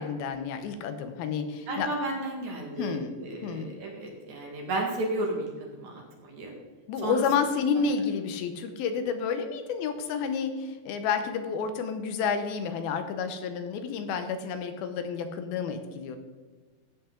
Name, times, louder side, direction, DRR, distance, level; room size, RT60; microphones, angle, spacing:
voice 1, 0.0-1.9 2.8-3.1 3.4-3.8 6.9-16.2, left 6 dB, 80° left, 8 dB, 2.6 m, -30 dB
voice 2, 1.7-5.5 5.7-6.5 7.0-7.2, right 2 dB, 55° right, 0 dB, 2.8 m, -33 dB
13.5 x 8.6 x 3.8 m, 1.3 s
omnidirectional pair, 4.4 m